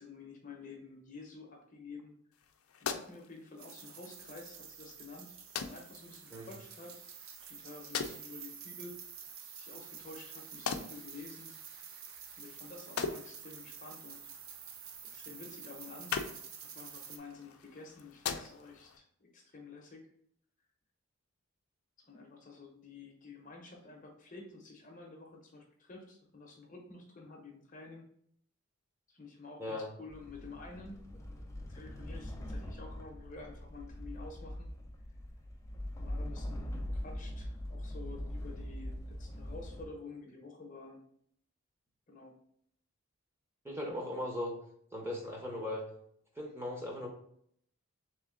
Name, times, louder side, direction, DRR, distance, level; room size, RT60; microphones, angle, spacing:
voice 1, 0.0-2.1 2.8-7.0 7.5-11.5 12.4-14.3 15.1-16.2 16.7-20.1 22.0-28.0 29.1-31.0 31.6-34.7 36.0-41.0 42.1-42.3, left 3 dB, 35° left, 1 dB, 0.7 m, -50 dB
sound 1, 2.3-19.0, left 6 dB, 80° left, 0.4 m, -44 dB
sound 2, 3.6-17.2, right 7 dB, 70° right, 0.5 m, -49 dB
sound 3, 30.1-39.8, left 1 dB, 15° left, 0.4 m, -42 dB
voice 2, 43.6-44.5 44.9-45.8 46.4-47.1, left 1 dB, 10° right, -1 dB, 0.7 m, -38 dB
3.6 x 3.1 x 3.7 m, 0.66 s
head